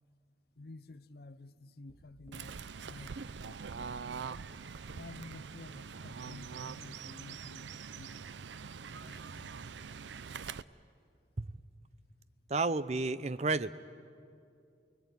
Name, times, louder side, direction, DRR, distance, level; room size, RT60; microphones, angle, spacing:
voice 1, 0.6-2.6 2.8-3.9 4.9-8.4 9.0-9.5, left 2 dB, 60° left, 0.6 m, -52 dB
sound 1, 1.9-4.0, equal, 10° right, 2.3 m, -61 dB
Fowl / Bird, 2.3-10.6, right 5 dB, 85° right, 0.6 m, -44 dB
voice 2, 12.5-13.7, right 3 dB, 40° right, 0.6 m, -31 dB
28.5 x 21.5 x 9.6 m
head